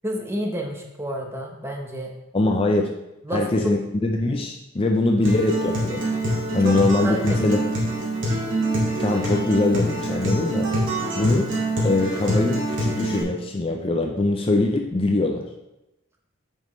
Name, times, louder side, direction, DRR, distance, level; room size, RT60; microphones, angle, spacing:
voice 1, 0.0-2.1 3.2-3.8 6.6-6.8 7.0-7.5, right 1 dB, 10° right, 1 dB, 0.9 m, -29 dB
voice 2, 2.3-2.9 3.3-6.0 6.5-7.6 9.0-10.7 11.1-11.5 11.8-15.5, left 2 dB, 25° left, 2 dB, 0.5 m, -22 dB
Acoustic guitar, 5.2-13.2, right 1 dB, 65° right, 2.1 m, -25 dB
9.2 x 5.4 x 3.1 m, 0.94 s
head